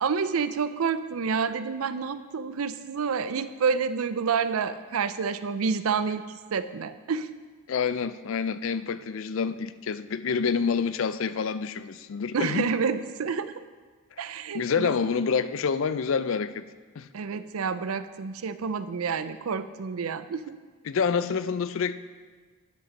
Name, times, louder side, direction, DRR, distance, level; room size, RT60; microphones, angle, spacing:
voice 1, 0.0-7.3 12.3-13.6 14.2-14.9 17.1-20.6, right 5 dB, 90° right, 12 dB, 0.5 m, -29 dB
voice 2, 7.7-12.7 14.5-16.6 17.0-17.1 20.9-22.0, left 6 dB, 65° left, 14 dB, 0.4 m, -27 dB
9.9 x 5.8 x 6.4 m, 1.4 s
head